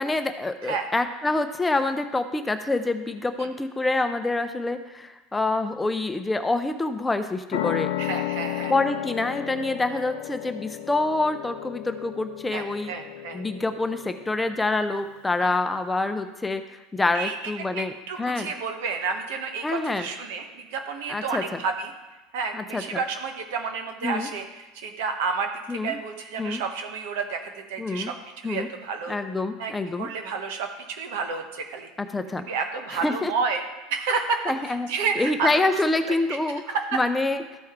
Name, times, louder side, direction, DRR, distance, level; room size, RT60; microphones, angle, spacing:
voice 1, 0.0-7.9 8.7-12.9 13.3-18.5 19.6-20.1 21.1-21.6 22.5-23.0 24.0-24.3 25.7-26.0 26.4-26.6 27.8-28.1 28.4-28.7 29.1-30.1 32.0-32.4 32.9-33.3 34.5-34.9 35.2-37.4, left 2 dB, 10° left, 8 dB, 0.5 m, -26 dB
sound 1, 7.5-14.7, left 13 dB, 85° left, 0.4 m, -33 dB
voice 2, 8.0-8.7 12.5-13.4 15.4-15.5 17.1-17.3 17.7-21.9 22.3-28.1 28.4-29.2 29.6-31.9 32.5-33.6 33.9-34.4 34.7-35.6 36.1-36.4 36.9-37.0, right 5 dB, 75° right, 5 dB, 1.1 m, -30 dB
13.0 x 4.4 x 3.6 m, 1.1 s
supercardioid pair, 125°, 0 cm